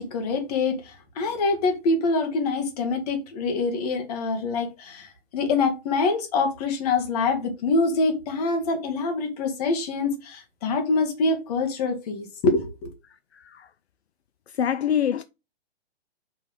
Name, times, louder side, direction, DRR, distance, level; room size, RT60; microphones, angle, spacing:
voice 1, 0.0-12.9, left 3 dB, 35° left, 1.9 m, -25 dB
voice 2, 13.3-13.7 14.5-15.2, left 9 dB, 75° left, 0.5 m, -25 dB
5.8 x 3.5 x 5.3 m
figure-of-eight pair, 130°, 32 cm